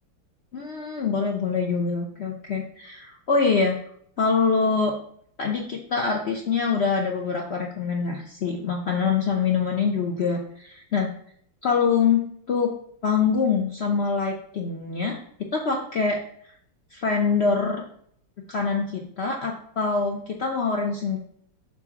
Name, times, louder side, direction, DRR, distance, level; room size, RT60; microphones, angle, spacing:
voice 1, 0.5-3.8 4.2-4.9 5.4-11.1 11.6-12.2 12.5-12.7 13.0-16.2 16.9-17.9 18.5-21.2, left 5 dB, 90° left, 0 dB, 0.5 m, -24 dB
7.4 x 2.7 x 5.8 m, 0.63 s
omnidirectional pair, 2.1 m